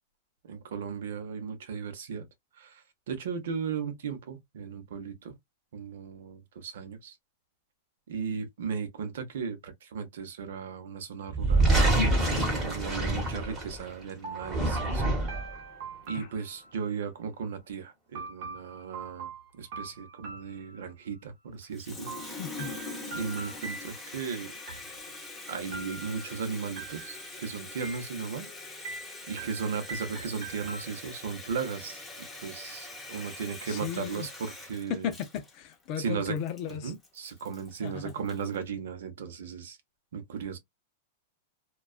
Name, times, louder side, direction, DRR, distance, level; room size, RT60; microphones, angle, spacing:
voice 1, 0.4-2.3 2.6-5.4 5.7-7.2 8.1-11.7 12.6-15.1 16.1-22.4 23.1-24.5 25.5-28.5 29.3-32.0 32.4-35.1 36.0-36.4 36.8-39.8 40.1-40.6, right 6 dB, 80° right, 0.8 m, -36 dB
sound 1, 11.3-13.9 14.4-15.5, right 2 dB, 20° right, 1.1 m, -26 dB
sound 2, 14.2-17.0 18.1-21.2 22.1-24.3 24.7-25.3 25.7-26.4 26.8-27.4 27.8-28.5 28.8-31.3, right 4 dB, 55° right, 0.9 m, -43 dB
Water tap faucet, 21.6-38.5, left 3 dB, 5° left, 0.8 m, -43 dB
voice 2, 22.4-22.7 33.7-34.3 34.9-36.9 37.8-38.1, left 9 dB, 40° left, 0.5 m, -35 dB
2.3 x 2.3 x 2.3 m
supercardioid pair, 150°, 0 cm